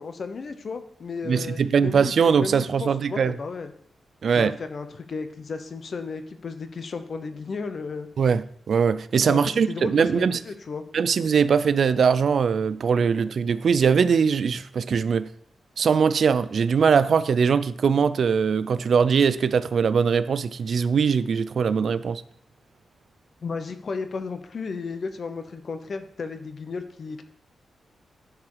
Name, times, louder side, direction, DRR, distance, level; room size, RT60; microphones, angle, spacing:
voice 1, 0.0-3.7 4.3-8.1 9.3-10.8 23.4-27.2, left 4 dB, 50° left, 0.8 m, -34 dB
voice 2, 1.3-3.4 4.2-4.5 8.2-10.4 10.9-15.2 15.8-22.2, right 6 dB, 60° right, 0.3 m, -21 dB
11.0 x 4.8 x 4.7 m
wide cardioid pair, 135°, 0 cm